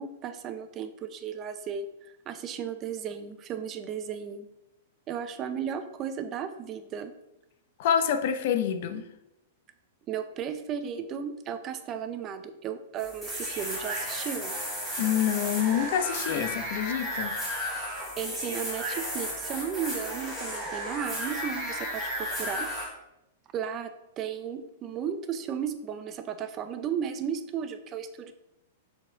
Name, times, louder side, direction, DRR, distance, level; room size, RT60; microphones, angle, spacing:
voice 1, 0.0-4.5 5.1-7.1 10.1-14.6 18.2-22.7 23.5-28.3, right 8 dB, 30° right, 10 dB, 0.5 m, -35 dB
voice 2, 7.8-9.0 15.0-17.3, left 9 dB, 55° left, 8 dB, 0.8 m, -27 dB
sound 1, 13.0-22.9, equal, 5° right, 2.3 m, -34 dB
6.7 x 4.3 x 4.6 m, 0.89 s
hypercardioid pair, 145°, 0 cm